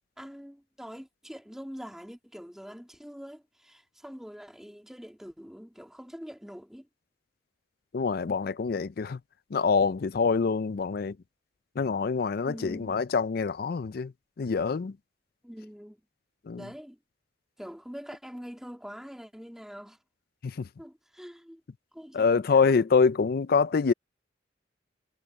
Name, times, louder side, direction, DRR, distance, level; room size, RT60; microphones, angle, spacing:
voice 1, 0.2-6.9 12.4-13.0 15.4-16.0 16.5-17.0 17.6-20.0 20.8-21.6 21.9-22.9, equal, ahead, 2.7 m, -44 dB
voice 2, 7.9-9.2 9.5-11.2 11.8-14.1 14.4-14.9 16.5-16.7 20.4-20.7 22.1-23.9, left 5 dB, 50° left, 0.4 m, -25 dB
head